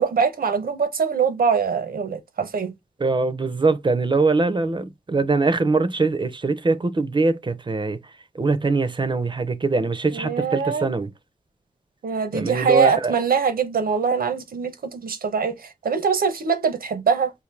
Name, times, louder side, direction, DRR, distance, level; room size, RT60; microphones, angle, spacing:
voice 1, 0.0-2.7 10.1-10.9 12.0-17.3, right 6 dB, 85° right, 0.7 m, -23 dB
voice 2, 3.0-8.0 8.3-11.1 12.3-13.1, right 3 dB, 35° right, 0.5 m, -22 dB
3.8 x 2.5 x 3.2 m
wide cardioid pair, 85°, 15 cm